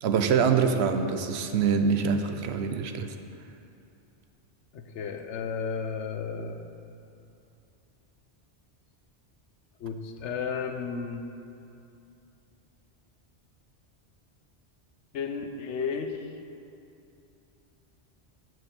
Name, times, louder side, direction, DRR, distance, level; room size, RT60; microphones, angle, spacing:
voice 1, 0.0-3.1, right 6 dB, 70° right, 7 dB, 0.9 m, -25 dB
voice 2, 4.7-6.6 9.8-11.2 15.1-16.3, left 5 dB, 85° left, 7 dB, 1.0 m, -33 dB
7.8 x 6.1 x 7.0 m, 2.7 s
omnidirectional pair, 1.2 m